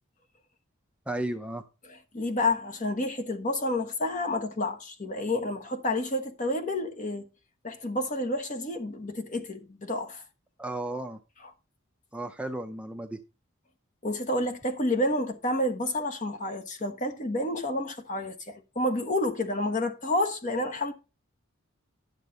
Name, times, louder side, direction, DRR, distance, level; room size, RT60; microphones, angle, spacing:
voice 1, 1.1-1.6 10.6-11.2 12.1-13.2, right 1 dB, 5° right, 0.5 m, -34 dB
voice 2, 2.1-7.3 7.6-10.2 14.0-20.9, left 1 dB, 35° left, 1.2 m, -29 dB
10.5 x 7.3 x 4.0 m
head